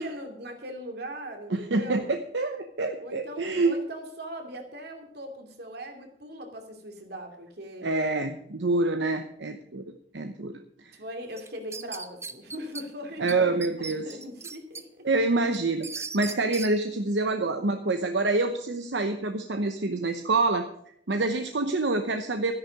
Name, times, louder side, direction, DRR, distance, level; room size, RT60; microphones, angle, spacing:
voice 1, 0.0-2.2 3.0-8.0 10.9-15.1, equal, 65° right, 4 dB, 2.6 m, -40 dB
voice 2, 1.5-3.8 7.8-9.8 10.1-10.6 13.2-14.1 15.0-20.7 21.1-22.5, right 3 dB, 80° right, 7 dB, 0.9 m, -26 dB
sound 1, 11.4-12.8 13.3-13.4 13.6-14.8 15.2-16.7, right 4 dB, 15° right, 0.7 m, -37 dB
13.0 x 11.0 x 5.1 m, 0.71 s
head